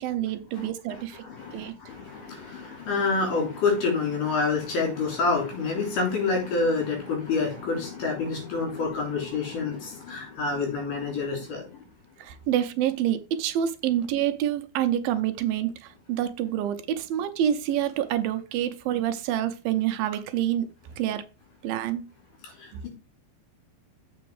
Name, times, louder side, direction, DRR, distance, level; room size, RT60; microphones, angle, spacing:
voice 1, 0.0-1.2 1.5-1.7 12.2-20.7 21.0-21.2 21.6-22.0, right 11 dB, 80° right, 2.5 m, -27 dB
voice 2, 1.2-11.7, left 4 dB, 65° left, 4.7 m, -27 dB
7.8 x 5.1 x 4.7 m
omnidirectional pair, 4.2 m